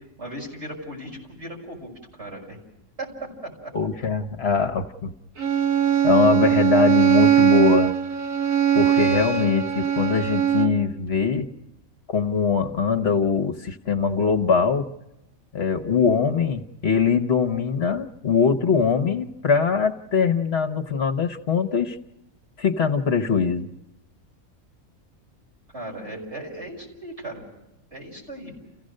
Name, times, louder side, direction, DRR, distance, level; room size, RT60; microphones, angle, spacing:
voice 1, 0.2-2.6 3.0-3.1 25.7-27.5 27.9-28.5, right 1 dB, 55° right, -2 dB, 6.2 m, -37 dB
voice 2, 3.7-5.1 6.0-7.9 8.7-11.5 12.1-14.9 15.5-22.0 22.6-23.7, left 5 dB, 55° left, 8 dB, 1.2 m, -22 dB
Bowed string instrument, 5.4-10.8, right 10 dB, 80° right, 1.7 m, -20 dB
29.5 x 16.0 x 6.5 m, 0.91 s
omnidirectional pair, 1.4 m